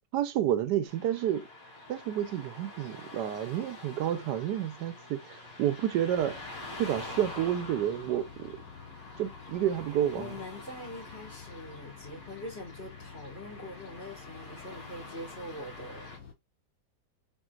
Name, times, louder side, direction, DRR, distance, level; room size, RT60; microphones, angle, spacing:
voice 1, 0.1-1.5 1.9-6.4 6.8-8.6 9.2-10.3, right 11 dB, 80° right, 1.2 m, -30 dB
Car passing by / Traffic noise roadway noise, 0.9-16.2, left 1 dB, 85° left, 2.9 m, -47 dB
sound 1, 6.1-16.3, left 7 dB, 60° left, 1.7 m, -50 dB
voice 2, 10.1-16.1, left 1 dB, 40° left, 2.7 m, -43 dB
4.4 x 4.3 x 2.3 m
omnidirectional pair, 1.8 m